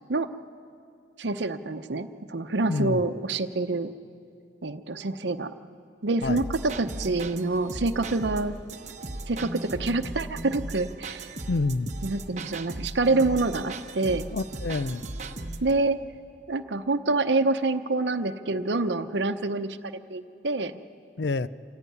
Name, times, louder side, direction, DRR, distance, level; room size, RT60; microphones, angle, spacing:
voice 1, 1.2-3.9 4.6-5.5 6.0-8.6 9.3-11.3 12.0-14.3 15.6-16.0 16.5-20.8, right 3 dB, 85° right, 7 dB, 0.8 m, -27 dB
voice 2, 2.7-3.0 6.2-6.4 11.5-11.9 14.3-15.0 21.2-21.5, left 3 dB, 75° left, 16 dB, 0.5 m, -27 dB
sound 1, 6.2-15.7, right 2 dB, 40° right, 1.1 m, -37 dB
26.5 x 16.5 x 9.4 m, 2.5 s
head